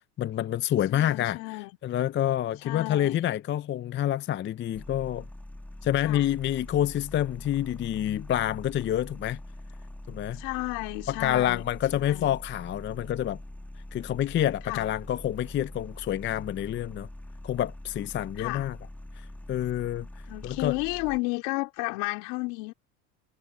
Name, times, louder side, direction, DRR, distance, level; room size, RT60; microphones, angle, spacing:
voice 1, 0.2-1.4 1.8-5.3 5.8-9.4 10.1-10.4 11.1-13.4 13.9-17.1 17.4-18.8 19.2-20.1 20.4-20.7, left 12 dB, 25° left, 0.6 m, -28 dB
voice 2, 0.9-1.7 2.6-3.2 6.0-6.3 10.3-11.6 12.0-12.4 14.6-14.9 18.4-18.7 20.3-22.7, left 27 dB, 60° left, 2.7 m, -32 dB
sound 1, 4.7-21.2, left 1 dB, 5° left, 1.4 m, -43 dB
hypercardioid pair, 105°, 45 cm